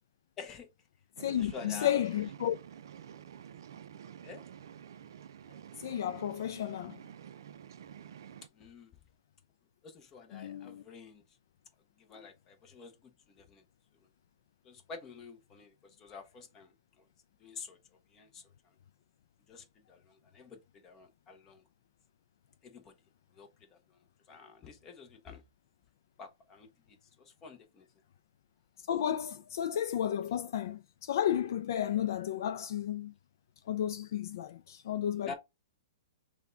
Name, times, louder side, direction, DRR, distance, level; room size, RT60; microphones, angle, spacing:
voice 1, 0.4-0.7 1.3-2.2 4.2-4.4 8.5-8.9 9.8-11.2 12.0-13.6 14.6-16.7 17.4-17.8 18.1-18.5 19.5-21.6 22.6-22.9 23.3-24.0 24.3-25.4 26.2-27.8 35.2-35.4, left 5 dB, 15° left, 0.7 m, -49 dB
voice 2, 1.2-2.6 5.8-7.0 10.3-10.8 28.9-33.1 33.7-35.3, left 10 dB, 55° left, 0.3 m, -32 dB
sound 1, 1.2-8.5, right 9 dB, 65° right, 0.4 m, -49 dB
5.9 x 2.2 x 3.8 m
hypercardioid pair, 165°, 2 cm